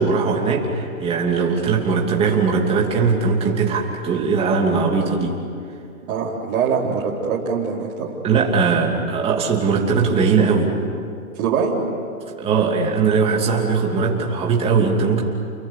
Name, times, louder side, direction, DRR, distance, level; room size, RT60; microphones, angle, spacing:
voice 1, 0.0-5.4 8.2-10.7 12.4-15.2, right 5 dB, 15° right, -1 dB, 2.8 m, -19 dB
voice 2, 6.1-8.1 11.4-11.8, right 6 dB, 35° right, -5 dB, 4.1 m, -23 dB
30.0 x 22.5 x 8.4 m, 2.5 s
hypercardioid pair, 160°, 43 cm